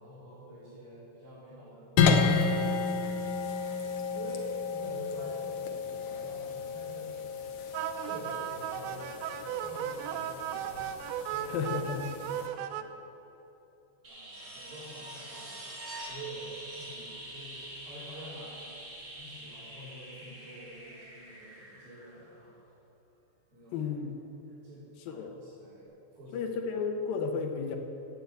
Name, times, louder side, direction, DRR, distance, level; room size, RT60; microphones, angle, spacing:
voice 1, 0.0-3.0 3.8-7.2 8.0-9.3 9.6-11.0 11.3-11.7 12.0-13.1 14.0-15.7 16.0-18.7 19.1-22.6 23.5-24.0 24.5-26.5, right 1 dB, 55° right, -11 dB, 5.5 m, -48 dB
sound 1, 2.0-12.5, left 5 dB, 85° left, 1.7 m, -32 dB
sound 2, 7.7-12.8, right 10 dB, 85° right, 2.9 m, -36 dB
voice 2, 11.5-12.1 23.7-24.1 25.1-25.3 26.3-27.8, left 5 dB, 70° left, 4 dB, 2.4 m, -32 dB
sound 3, 14.0-22.7 25.1-25.2, right 1 dB, 25° right, 2.1 m, -45 dB
17.0 x 8.1 x 8.1 m, 3.0 s
omnidirectional pair, 5.1 m